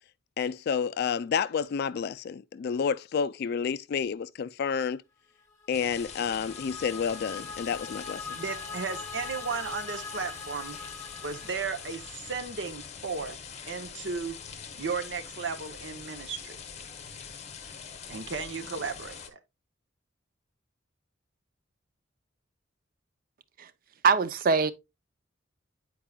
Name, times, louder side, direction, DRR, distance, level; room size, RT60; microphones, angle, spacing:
voice 1, 0.4-5.0 5.7-8.4, left 6 dB, 55° left, 0.3 m, -30 dB
sound 1, 5.5-12.6, left 4 dB, 15° left, 1.4 m, -42 dB
sound 2, 5.7-19.3, left 6 dB, 35° left, 0.7 m, -44 dB
voice 2, 8.3-10.8 11.2-13.4 13.7-14.4 14.8-16.6 18.1-19.4, right 5 dB, 65° right, 0.8 m, -35 dB
voice 3, 24.0-24.7, right 5 dB, 45° right, 0.4 m, -22 dB
8.9 x 4.6 x 2.3 m
head